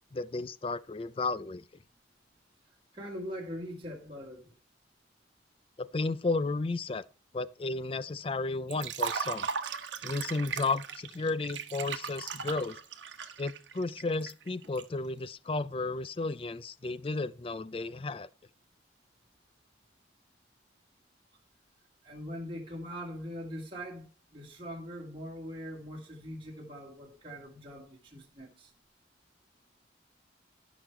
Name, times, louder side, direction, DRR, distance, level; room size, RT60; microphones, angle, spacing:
voice 1, 0.1-1.6 5.8-7.0 7.3-9.5 10.0-12.8 13.4-18.3, left 3 dB, 30° left, 0.4 m, -33 dB
voice 2, 2.9-4.5 22.0-28.7, equal, 30° right, 1.8 m, -42 dB
Liquid, 8.7-14.8, right 6 dB, 80° right, 1.1 m, -37 dB
11.5 x 6.2 x 4.5 m
head